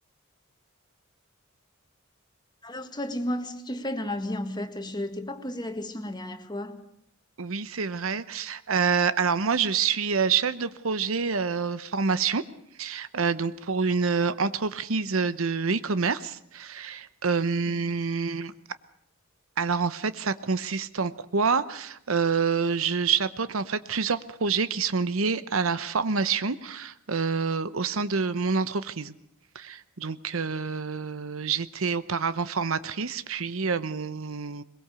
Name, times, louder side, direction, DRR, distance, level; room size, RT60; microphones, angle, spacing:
voice 1, 2.6-6.8 17.7-17.8, left 1 dB, 20° left, 1.8 m, -33 dB
voice 2, 7.4-12.4 12.8-18.5 19.6-29.1 29.5-34.6, right 5 dB, 75° right, 0.9 m, -27 dB
22.0 x 22.0 x 6.9 m
head